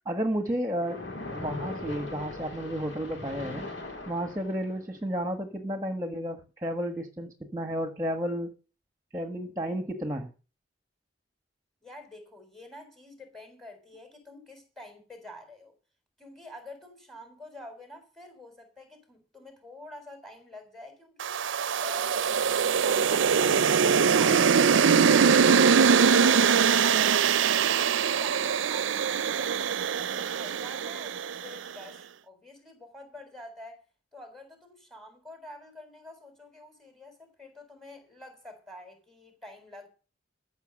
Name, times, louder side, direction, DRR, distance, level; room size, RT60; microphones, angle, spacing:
voice 1, 0.1-1.0 1.3-3.7 4.1-8.5 9.1-10.3, equal, 15° right, 1.6 m, -32 dB
Splash splatter, 0.8-4.8, left 2 dB, 70° left, 4.7 m, -39 dB
voice 2, 11.8-15.7 16.2-21.4 21.8-25.7 26.2-33.8 34.1-39.9, left 1 dB, ahead, 4.1 m, -47 dB
sound 1, 21.2-31.5, right 6 dB, 85° right, 0.5 m, -22 dB
14.5 x 6.2 x 8.8 m
head